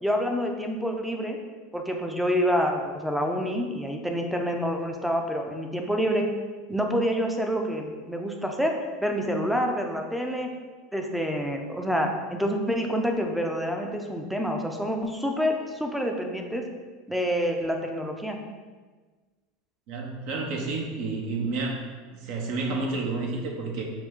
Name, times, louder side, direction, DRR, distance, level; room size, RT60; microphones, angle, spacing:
voice 1, 0.0-1.4 1.7-6.3 6.7-8.7 9.0-10.5 10.9-16.6 17.1-18.4, equal, ahead, 3 dB, 0.5 m, -27 dB
voice 2, 19.9-21.8 22.1-23.8, right 3 dB, 60° right, 1 dB, 0.7 m, -30 dB
4.7 x 2.2 x 3.6 m, 1.4 s
hypercardioid pair, 105°, 2 cm